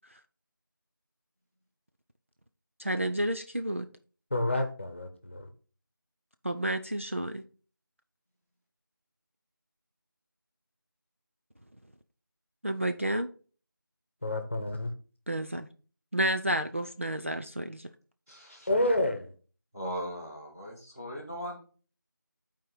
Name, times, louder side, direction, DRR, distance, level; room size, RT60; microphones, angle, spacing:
voice 1, 2.8-3.9 6.4-7.4 12.6-13.3 15.3-15.7 16.1-17.9, right 1 dB, 35° right, 6 dB, 0.5 m, -30 dB
voice 2, 4.3-5.5 14.2-14.9 18.7-19.3, left 1 dB, 35° left, 6 dB, 1.1 m, -29 dB
voice 3, 18.3-18.7 19.7-21.6, equal, 10° right, -7 dB, 1.2 m, -38 dB
11.0 x 4.5 x 3.9 m, 0.39 s
figure-of-eight pair, 175°, 11 cm